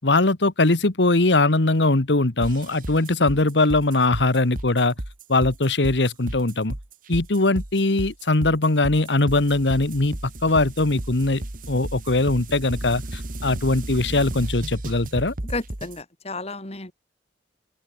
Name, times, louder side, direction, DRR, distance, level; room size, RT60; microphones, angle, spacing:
voice 1, 0.0-4.9 5.3-6.8 7.1-15.3, left 2 dB, 90° left, 1.6 m, -21 dB
sound 1, 2.4-16.0, right 1 dB, 50° right, 1.8 m, -34 dB
voice 2, 15.5-16.9, left 2 dB, 35° left, 3.3 m, -32 dB
open air
head